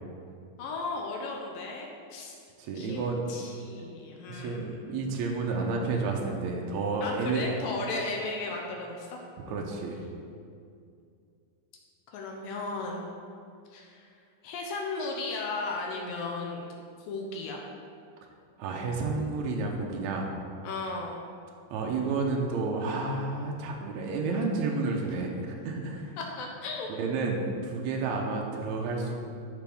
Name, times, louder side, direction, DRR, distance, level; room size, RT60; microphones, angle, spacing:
voice 1, 0.6-2.3 2.8-5.0 7.0-9.7 12.1-13.1 13.7-14.1 14.4-16.7 17.0-17.6 20.6-21.2 26.2-26.9, left 3 dB, 75° left, 0 dB, 2.4 m, -36 dB
voice 2, 2.6-3.2 4.3-7.4 9.5-10.0 18.6-20.3 21.7-26.1 27.0-29.1, right 3 dB, 85° right, 0 dB, 1.6 m, -30 dB
13.0 x 4.6 x 3.5 m, 2.4 s
omnidirectional pair, 4.2 m